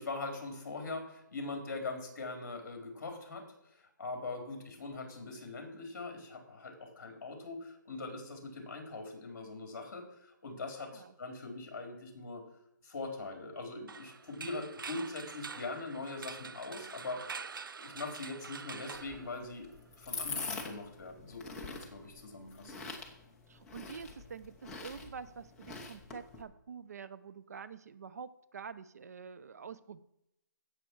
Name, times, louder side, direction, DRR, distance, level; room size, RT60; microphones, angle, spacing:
voice 1, 0.0-3.4 3.7-12.4 12.8-17.2 17.8-19.7 20.0-22.7, left 3 dB, 50° left, 3 dB, 4.1 m, -42 dB
sound 1, 13.9-19.9, right 5 dB, 90° right, 0.6 m, -46 dB
sound 2, 18.9-26.4, left 4 dB, 5° left, 0.9 m, -44 dB
voice 2, 23.5-30.0, right 6 dB, 50° right, 14 dB, 0.7 m, -47 dB
16.5 x 6.8 x 4.7 m, 0.81 s
hypercardioid pair, 165°, 11 cm